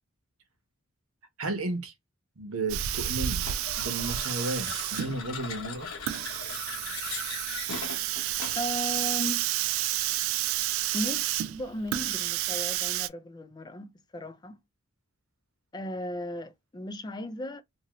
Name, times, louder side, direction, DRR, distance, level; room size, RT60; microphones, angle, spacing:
voice 1, 1.4-1.9 2.4-3.4 3.8-5.9, right 2 dB, 85° right, 0.9 m, -33 dB
Hiss, 2.7-13.1, right 13 dB, 70° right, 0.3 m, -30 dB
sound 1, 3.4-8.8, left 5 dB, 75° left, 0.9 m, -39 dB
voice 2, 8.5-9.5 10.9-14.6 15.7-17.6, left 1 dB, 20° left, 0.4 m, -36 dB
2.7 x 2.6 x 2.9 m
head